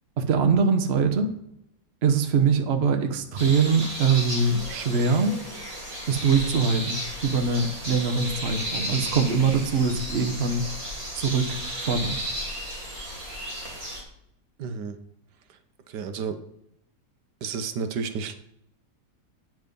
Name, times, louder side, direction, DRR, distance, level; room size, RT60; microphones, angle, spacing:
voice 1, 0.2-1.3 2.0-5.4 6.1-10.6 11.1-12.2, right 5 dB, 45° right, 5 dB, 1.1 m, -23 dB
sound 1, 3.4-14.0, equal, 20° right, 2.6 m, -34 dB
voice 2, 14.6-14.9 15.9-16.3 17.4-18.4, right 5 dB, 80° right, 8 dB, 1.4 m, -31 dB
9.2 x 6.0 x 5.2 m, 0.77 s
omnidirectional pair, 1.8 m